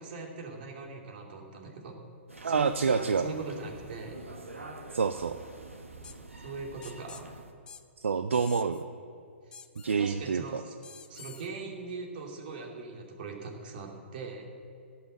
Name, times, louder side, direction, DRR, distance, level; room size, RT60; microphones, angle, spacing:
voice 1, 0.0-2.0 2.4-4.2 6.4-7.3 9.5-9.6 10.0-10.8 11.1-14.5, right 4 dB, 50° right, 1 dB, 2.6 m, -41 dB
sound 1, 2.3-7.5, right 2 dB, 90° right, 1.6 m, -46 dB
voice 2, 2.4-3.3 4.9-5.3 8.0-8.8 9.8-10.6, right 5 dB, 70° right, 9 dB, 0.6 m, -27 dB
sound 2, 6.0-6.2 6.8-7.2 7.7-7.8 8.3-8.8 9.5-10.0 10.8-11.5, left 7 dB, 10° left, 0.5 m, -48 dB
16.5 x 5.8 x 7.5 m, 2.3 s
figure-of-eight pair, 125°, 7 cm